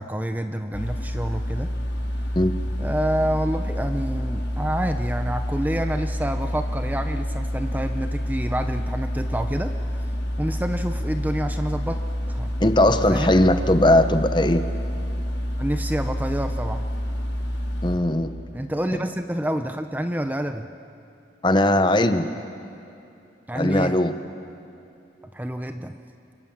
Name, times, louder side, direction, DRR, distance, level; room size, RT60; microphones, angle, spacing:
voice 1, 0.0-1.7 2.8-9.7 10.4-12.0 12.3-12.5 13.1-13.3 15.6-16.8 18.5-20.7 23.5-23.9 25.3-26.0, right 1 dB, 10° right, 7 dB, 0.7 m, -28 dB
sound 1, 0.7-18.0, equal, 80° left, 3.8 m, -28 dB
voice 2, 12.6-14.7 17.8-18.3 21.4-22.3 23.5-24.1, left 1 dB, 25° left, 9 dB, 0.9 m, -19 dB
27.5 x 25.0 x 7.4 m, 2.7 s
head